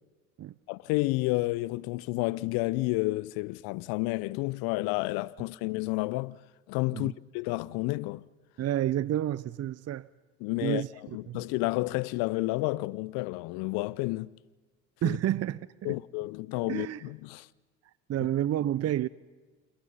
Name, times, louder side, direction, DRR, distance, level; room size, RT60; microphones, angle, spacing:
voice 1, 0.7-6.4 6.7-8.3 10.4-10.8 11.1-14.3 15.0-15.2 15.8-17.5, left 21 dB, 75° left, 0.7 m, -30 dB
voice 2, 8.6-10.1 10.6-11.4 15.0-15.9 16.7-17.0 18.1-19.1, right 12 dB, 45° right, 0.7 m, -30 dB
27.5 x 22.0 x 5.5 m
hypercardioid pair, 65°, 37 cm